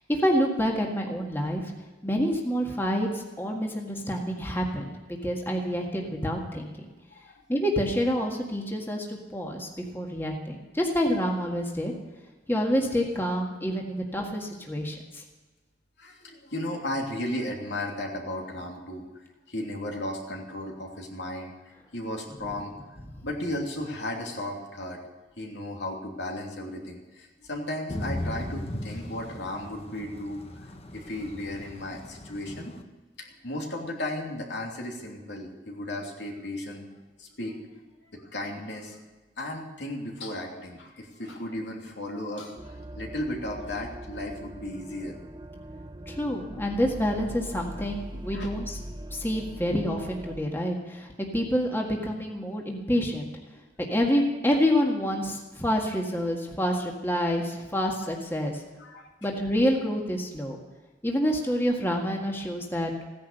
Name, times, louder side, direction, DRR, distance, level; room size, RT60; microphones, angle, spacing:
voice 1, 0.1-1.7 2.0-6.8 7.5-11.9 12.5-15.2 46.1-48.8 49.1-53.3 53.9-58.6 59.2-60.6 61.0-62.9, equal, 15° left, 0 dB, 1.8 m, -27 dB
voice 2, 16.0-19.0 19.5-21.5 21.9-22.7 23.2-25.0 25.4-32.8 33.2-36.9 37.2-37.6 38.1-39.0 39.4-45.2 48.3-48.5 58.8-59.1, left 1 dB, 70° left, 0 dB, 3.0 m, -35 dB
Thunder / Rain, 27.9-32.8, left 1 dB, 35° left, 1.2 m, -37 dB
sound 1, 42.6-50.4, right 1 dB, 25° right, 0.8 m, -41 dB
16.0 x 10.5 x 6.8 m, 1.2 s
head